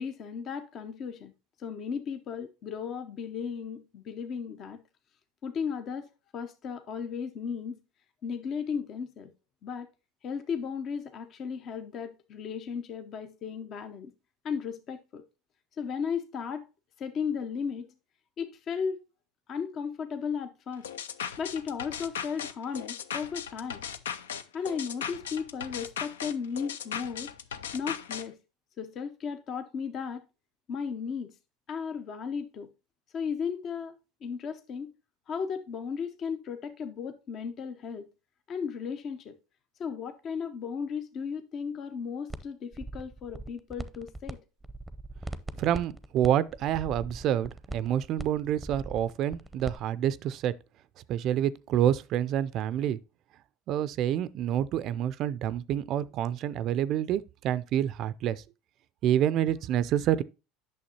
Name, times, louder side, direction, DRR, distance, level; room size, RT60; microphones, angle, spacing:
voice 1, 0.0-1.3 1.6-4.8 5.4-6.1 6.3-7.7 8.2-9.3 9.6-9.9 10.2-14.1 14.4-15.2 15.8-16.7 17.0-17.9 18.4-19.0 19.5-20.9 21.4-23.8 24.5-27.3 27.7-28.4 28.8-30.2 30.7-31.3 31.7-32.7 33.1-33.9 34.2-34.9 35.3-38.1 38.5-39.4 39.8-44.4, left 6 dB, 45° left, 0.7 m, -35 dB
sound 1, 20.8-28.2, left 8 dB, 85° left, 0.4 m, -37 dB
sound 2, 42.3-42.4 42.7-44.3 44.6-49.8, right 2 dB, 5° right, 0.6 m, -40 dB
voice 2, 45.6-50.5 51.1-53.0 53.7-58.4 59.0-60.2, right 11 dB, 55° right, 0.4 m, -28 dB
8.6 x 6.2 x 2.8 m
hypercardioid pair, 80°, 0 cm